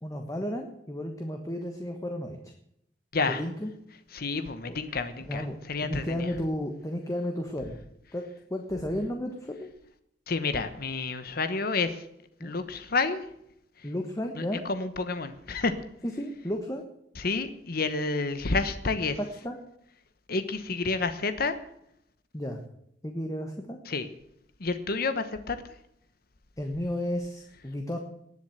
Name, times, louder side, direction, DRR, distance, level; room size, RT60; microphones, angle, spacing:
voice 1, 0.0-2.5 3.4-3.7 5.3-7.8 8.1-8.2 8.5-9.7 12.4-12.5 13.8-14.6 16.2-16.8 19.4-19.6 22.3-22.6 23.0-23.8 26.6-28.0, left 1 dB, 20° left, 3 dB, 1.4 m, -33 dB
voice 2, 4.1-6.3 10.3-12.0 12.4-13.3 13.8-13.9 14.3-15.8 17.2-19.2 20.3-21.6 23.9-24.1 24.6-25.6, left 3 dB, 55° left, 11 dB, 1.1 m, -29 dB
19.0 x 7.5 x 8.0 m, 0.75 s
head